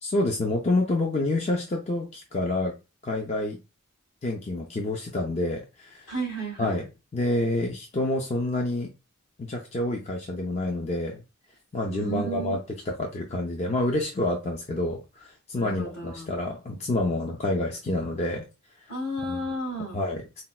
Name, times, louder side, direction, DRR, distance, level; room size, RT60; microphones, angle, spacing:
voice 1, 0.0-2.7 3.0-3.6 4.2-6.1 6.6-8.9 9.4-11.2 11.7-18.4 19.3-19.5 19.9-20.4, left 2 dB, 30° left, 1 dB, 0.4 m, -28 dB
voice 2, 6.1-6.8 11.8-12.6 15.5-16.3 18.9-20.0, right 2 dB, 65° left, -2 dB, 1.7 m, -33 dB
4.1 x 2.1 x 2.2 m, 0.28 s
head